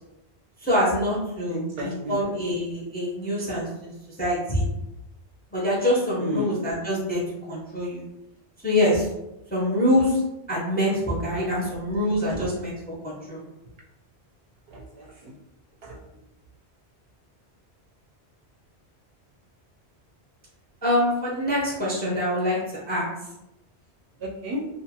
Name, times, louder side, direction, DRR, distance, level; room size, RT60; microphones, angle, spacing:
voice 1, 0.6-3.7 4.2-4.6 5.5-7.2 7.5-8.0 8.6-9.1 9.5-10.2 10.5-12.8 13.0-13.4 20.8-22.6 22.9-23.0, left 1 dB, 10° left, -6 dB, 0.5 m, -24 dB
voice 2, 1.5-2.2 6.2-6.5 11.3-11.4 12.3-12.5 14.7-15.3 15.8-16.0 24.2-24.6, equal, 65° right, -2 dB, 0.8 m, -33 dB
2.5 x 2.3 x 2.8 m, 0.92 s
omnidirectional pair, 1.1 m